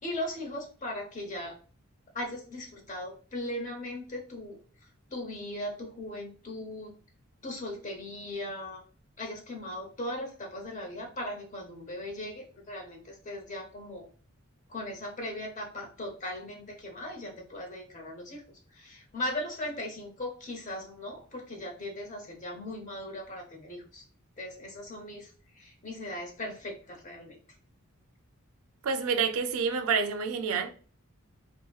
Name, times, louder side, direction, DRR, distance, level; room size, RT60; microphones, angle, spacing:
voice 1, 0.0-1.6 2.1-4.6 5.1-6.9 7.4-8.8 9.2-14.1 14.7-18.4 18.7-24.0 24.4-27.4, left 1 dB, 35° left, 0.7 m, -38 dB
voice 2, 28.8-30.7, right 5 dB, 80° right, 0.4 m, -28 dB
2.7 x 2.5 x 2.2 m
head